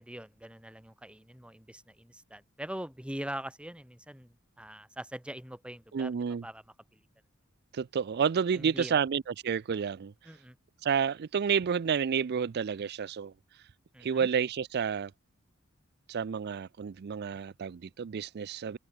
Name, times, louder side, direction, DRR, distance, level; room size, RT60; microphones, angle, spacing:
voice 1, 0.0-6.1 6.4-6.6 6.9-7.0 8.5-9.0 10.2-10.6 13.9-14.3, right 1 dB, 5° right, 2.0 m, -42 dB
voice 2, 5.9-6.4 7.7-10.1 10.8-13.6 14.0-15.1 16.1-18.8, right 7 dB, 50° right, 0.4 m, -30 dB
open air
head